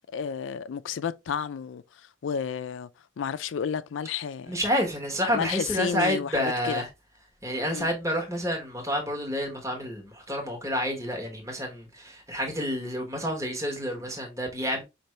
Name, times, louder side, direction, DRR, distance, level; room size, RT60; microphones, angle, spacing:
voice 1, 0.1-2.9 3.2-4.6 5.3-6.8 7.7-7.9, left 7 dB, 75° left, 0.4 m, -31 dB
voice 2, 4.5-6.9 7.4-14.8, equal, 15° right, 1.2 m, -29 dB
5.4 x 2.6 x 3.1 m
head